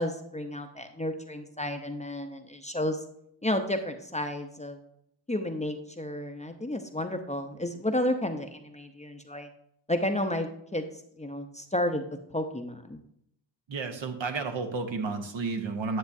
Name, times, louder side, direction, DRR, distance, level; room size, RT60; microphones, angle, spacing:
voice 1, 0.0-3.0 3.4-4.8 5.3-9.5 9.9-12.0 12.3-13.0, left 1 dB, 15° left, 6 dB, 0.7 m, -32 dB
voice 2, 13.7-16.0, right 4 dB, 65° right, 5 dB, 1.1 m, -32 dB
9.5 x 7.1 x 2.6 m, 0.74 s
cardioid pair, 50°, 49 cm